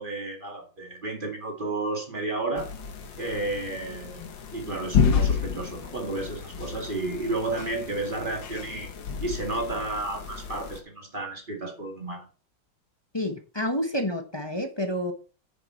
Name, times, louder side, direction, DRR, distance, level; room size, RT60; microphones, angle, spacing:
voice 1, 0.0-2.7 3.2-8.9 9.2-12.3, right 2 dB, 30° right, 2.1 m, -32 dB
sound 1, 2.6-10.8, left 6 dB, 90° left, 2.0 m, -30 dB
voice 2, 13.1-15.1, equal, 20° left, 0.7 m, -29 dB
9.1 x 6.8 x 4.4 m
omnidirectional pair, 2.0 m